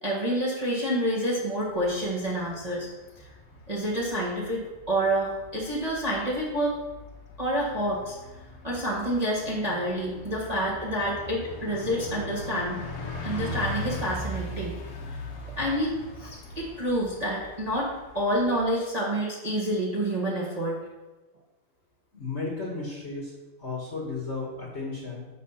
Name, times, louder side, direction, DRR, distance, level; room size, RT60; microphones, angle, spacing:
voice 1, 0.0-2.9 3.7-6.8 7.4-8.2 8.6-12.8 13.2-14.8 15.1-15.2 15.6-20.8, equal, 20° right, -5 dB, 1.5 m, -28 dB
Bus, 1.6-18.7, left 1 dB, 90° left, 2.3 m, -40 dB
voice 2, 22.1-23.3 23.6-25.2, left 3 dB, 35° left, -3 dB, 1.8 m, -34 dB
6.8 x 6.5 x 5.8 m, 1.1 s
omnidirectional pair, 2.4 m